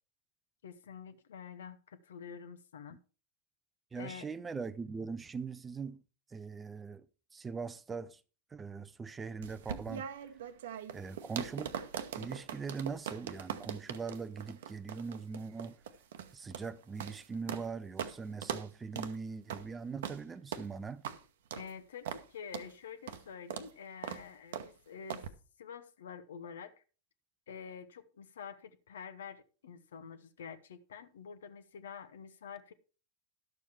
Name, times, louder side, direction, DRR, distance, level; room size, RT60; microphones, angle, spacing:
voice 1, 0.6-3.0 4.0-4.3 21.5-25.2 25.6-26.8 27.5-32.7, left 7 dB, 65° left, 1.0 m, -48 dB
voice 2, 3.9-6.0 6.3-7.1 7.3-8.2 8.5-10.1 10.9-11.7 12.2-15.8 16.3-21.0, right 5 dB, 15° right, 0.5 m, -41 dB
sound 1, 9.4-17.7 18.0-18.1 18.4-18.7 19.0-19.1 19.5-19.7 20.0-20.2 20.5-20.7 21.0-21.2 21.5-21.7 22.1-22.2 22.5-22.7 23.1-23.2 23.5-23.7 24.0-24.2 24.5-24.7 25.1-25.3, right 9 dB, 60° right, 0.9 m, -41 dB
12.0 x 7.1 x 4.5 m
figure-of-eight pair, 90°, 0 cm